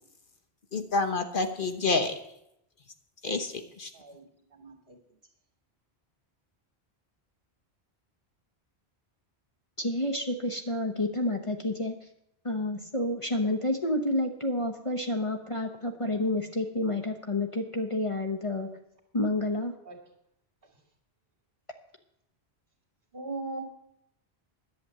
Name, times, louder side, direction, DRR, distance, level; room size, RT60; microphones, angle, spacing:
voice 1, 0.7-2.1 3.2-3.9, left 3 dB, 55° left, 6 dB, 1.1 m, -28 dB
voice 2, 9.8-11.9 12.4-18.7 19.1-19.7, left 1 dB, 30° left, 3 dB, 1.0 m, -29 dB
voice 3, 23.1-23.6, right 2 dB, 60° right, 0 dB, 2.5 m, -37 dB
11.0 x 7.2 x 8.5 m, 0.79 s
omnidirectional pair, 1.1 m